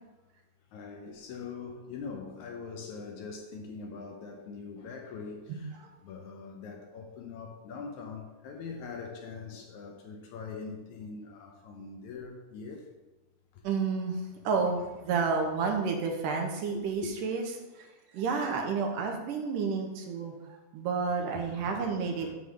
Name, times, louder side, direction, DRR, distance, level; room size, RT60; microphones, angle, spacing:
voice 1, 0.7-5.8 6.0-12.9 13.5-13.6 16.7-17.1 21.4-22.3, left 5 dB, 70° left, 2 dB, 2.0 m, -42 dB
voice 2, 13.6-14.2 14.4-17.5 17.8-17.9 18.1-22.3, right 5 dB, 80° right, 2 dB, 2.5 m, -30 dB
8.6 x 3.9 x 6.6 m, 1.1 s
omnidirectional pair, 3.9 m